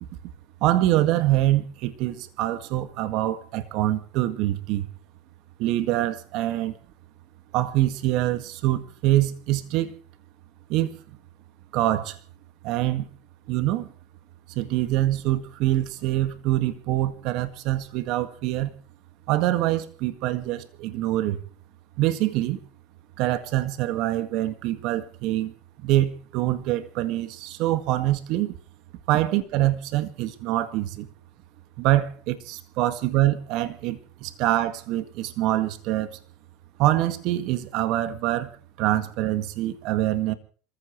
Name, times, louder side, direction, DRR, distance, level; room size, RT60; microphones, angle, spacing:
voice 1, 0.6-4.9 5.6-6.8 7.5-9.9 10.7-11.0 11.7-12.2 12.6-13.1 13.5-13.9 14.6-18.7 19.3-21.4 22.0-22.6 23.2-25.5 25.8-28.5 29.1-31.1 31.8-36.2 36.8-38.5 38.8-40.3, right 15 dB, 60° right, 1.9 m, -25 dB
27.5 x 15.0 x 3.2 m
supercardioid pair, 110°, 0 cm